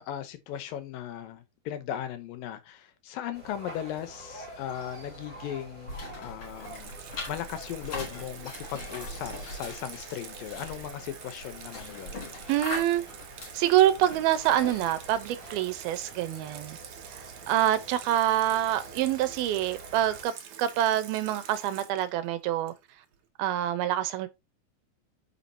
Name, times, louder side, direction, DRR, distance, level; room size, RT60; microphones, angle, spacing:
voice 1, 0.0-7.0 7.3-12.2, left 10 dB, 75° left, 2.5 m, -37 dB
sound 1, 3.3-20.2, right 1 dB, 25° right, 4.2 m, -47 dB
sound 2, 5.9-15.2, left 2 dB, 35° left, 4.3 m, -42 dB
Water tap faucet / Sink (filling or washing), 6.4-23.1, right 9 dB, 65° right, 2.3 m, -47 dB
voice 2, 12.5-13.0 13.5-16.8 17.1-20.3 20.6-22.7 23.4-24.3, right 12 dB, 80° right, 2.7 m, -26 dB
9.6 x 6.0 x 2.8 m
omnidirectional pair, 4.4 m